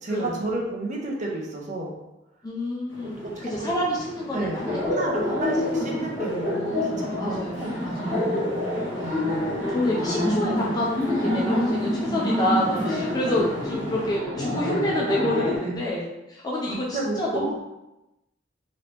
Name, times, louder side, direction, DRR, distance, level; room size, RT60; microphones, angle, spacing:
voice 1, 0.0-2.0 3.0-3.7 4.3-8.0 9.0-9.3 13.2-13.3 15.6-15.9 16.7-17.5, right 2 dB, 40° right, -2 dB, 0.7 m, -32 dB
voice 2, 2.4-4.9 5.3-5.6 7.2-8.3 9.7-17.5, left 1 dB, 20° left, -4 dB, 0.4 m, -28 dB
sound 1, 2.9-14.2, left 1 dB, 75° left, 1.3 m, -40 dB
Laughter, 4.7-15.6, left 1 dB, 20° right, 1.1 m, -27 dB
3.0 x 2.8 x 3.2 m, 0.96 s
head